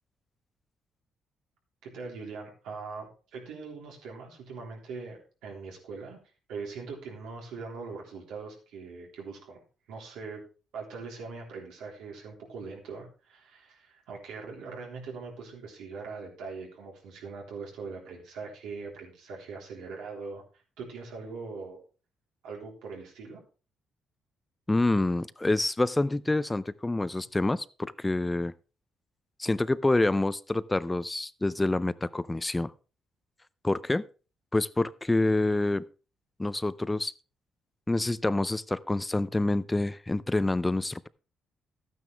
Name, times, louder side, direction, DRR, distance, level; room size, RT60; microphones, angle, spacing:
voice 1, 1.8-6.2 6.5-9.6 9.9-10.4 10.7-20.4 20.8-21.8 22.4-23.4, right 4 dB, 90° right, 3.6 m, -41 dB
voice 2, 24.7-28.5 29.4-32.7 33.6-34.0 34.5-35.8 36.4-37.1 37.9-41.1, left 2 dB, 15° left, 0.4 m, -27 dB
12.5 x 9.3 x 3.4 m
cardioid pair, 90°, 0 cm